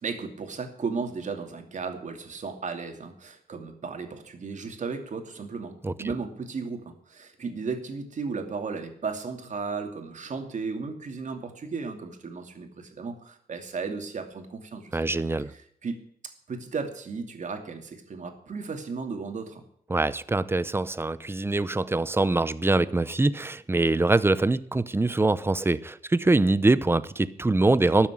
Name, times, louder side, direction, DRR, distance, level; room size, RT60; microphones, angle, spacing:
voice 1, 0.0-19.6, right 4 dB, 55° right, 5 dB, 2.5 m, -35 dB
voice 2, 14.9-15.5 19.9-28.1, right 2 dB, 15° right, 16 dB, 0.7 m, -23 dB
13.0 x 7.3 x 10.0 m, 0.65 s
cardioid pair, 105°, 15 cm